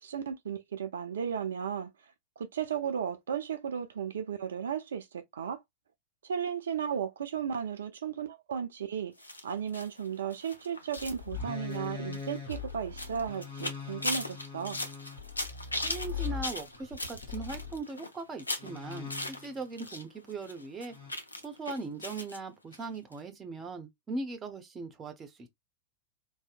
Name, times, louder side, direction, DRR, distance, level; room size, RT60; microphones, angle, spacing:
voice 1, 0.0-1.9 2.4-5.6 6.2-9.1 9.4-14.8, right 7 dB, 65° right, 0.3 m, -35 dB
sound 1, 9.2-20.0 20.3-22.4 22.7-22.8 23.1-23.2, left 1 dB, 80° left, 0.4 m, -39 dB
sound 2, 11.0-17.8 18.6-19.6 20.9-21.1, left 6 dB, 60° left, 1.1 m, -40 dB
voice 2, 15.8-21.0 21.4-25.5, right 3 dB, 20° right, 0.6 m, -39 dB
2.6 x 2.0 x 2.4 m
figure-of-eight pair, 90°, 0 cm